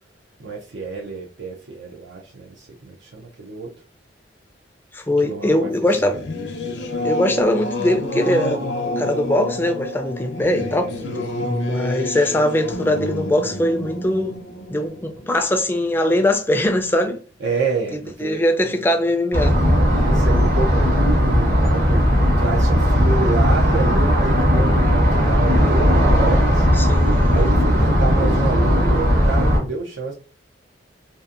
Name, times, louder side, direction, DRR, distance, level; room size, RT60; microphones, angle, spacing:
voice 1, 0.4-3.7 5.2-6.2 10.9-11.3 17.4-18.4 19.9-20.9 21.2-26.7 27.3-30.1, right 4 dB, 80° right, 0.5 m, -29 dB
voice 2, 4.9-6.2 7.0-8.7 9.0-10.9 11.4-14.4 14.7-17.2 18.2-19.6 26.8-27.4, left 1 dB, 10° left, 0.4 m, -21 dB
Singing / Musical instrument, 5.9-16.0, left 2 dB, 70° left, 0.6 m, -29 dB
sound 1, 19.3-29.6, equal, 55° right, 1.0 m, -17 dB
2.6 x 2.5 x 2.4 m
head